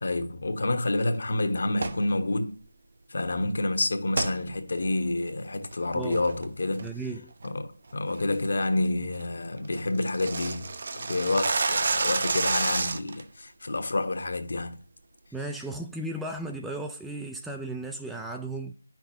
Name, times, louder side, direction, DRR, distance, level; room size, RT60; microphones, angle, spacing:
voice 1, 0.0-2.6 3.1-6.9 7.4-14.8, left 2 dB, 60° left, 1.2 m, -28 dB
sound 1, 1.7-2.1 4.1-4.4 4.8-4.9 5.5-5.7 6.1-6.4 6.8-7.1 7.4-7.5 7.9-8.2 8.5-8.6 8.9-9.0 9.2-9.3 9.6-13.2, right 4 dB, 50° right, 0.6 m, -29 dB
voice 2, 6.8-7.3 15.3-18.7, right 2 dB, 5° right, 0.3 m, -35 dB
9.7 x 5.9 x 2.9 m
figure-of-eight pair, 165°, 0 cm